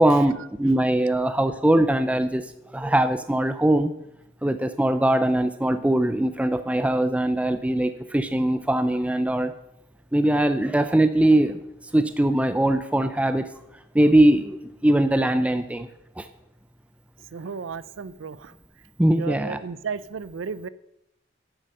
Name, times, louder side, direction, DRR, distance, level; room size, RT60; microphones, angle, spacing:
voice 1, 0.0-3.9 4.4-9.5 10.1-11.6 11.9-13.5 13.9-15.9 16.2-16.3 19.0-19.6, right 1 dB, 5° right, 10 dB, 0.4 m, -21 dB
voice 2, 17.3-18.6 19.1-20.7, right 5 dB, 90° right, 17 dB, 0.5 m, -34 dB
9.7 x 7.6 x 6.5 m, 0.82 s
head